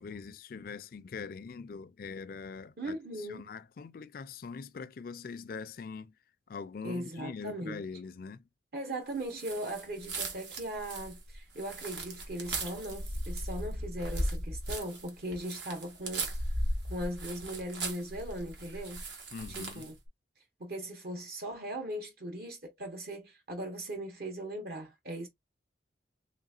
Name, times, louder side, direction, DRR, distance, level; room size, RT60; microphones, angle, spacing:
voice 1, 0.0-6.1 6.5-8.4 19.3-19.9, left 5 dB, 50° left, 0.3 m, -43 dB
voice 2, 2.8-3.5 6.8-7.8 8.7-16.6 16.9-19.0 19.5-20.0 20.6-25.3, right 1 dB, 55° right, 0.9 m, -39 dB
sound 1, 9.3-20.0, right 1 dB, 70° right, 1.2 m, -37 dB
3.7 x 3.5 x 2.4 m
head